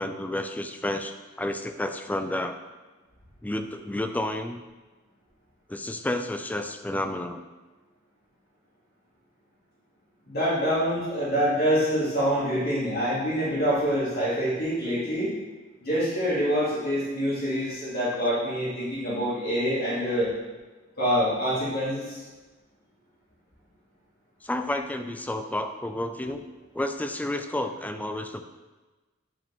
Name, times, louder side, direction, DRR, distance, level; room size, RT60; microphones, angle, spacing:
voice 1, 0.0-2.6 3.4-4.6 5.7-7.4 24.4-26.4 26.7-28.4, left 1 dB, 5° left, 7 dB, 0.3 m, -31 dB
voice 2, 10.3-15.3 15.8-20.3 21.0-22.1, equal, 50° left, -10 dB, 2.7 m, -26 dB
10.5 x 5.0 x 3.6 m, 1.2 s
head